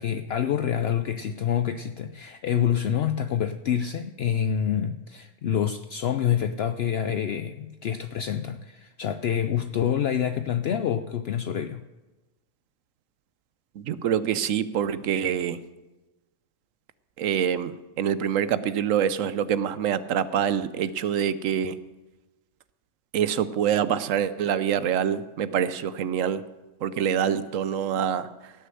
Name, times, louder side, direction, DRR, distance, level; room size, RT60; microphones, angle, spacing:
voice 1, 0.0-11.8, left 9 dB, 65° left, 10 dB, 0.7 m, -27 dB
voice 2, 13.7-15.6 17.2-21.8 23.1-26.4 26.8-28.5, right 9 dB, 80° right, 14 dB, 1.0 m, -26 dB
17.0 x 6.7 x 7.7 m, 1.1 s
omnidirectional pair, 1.3 m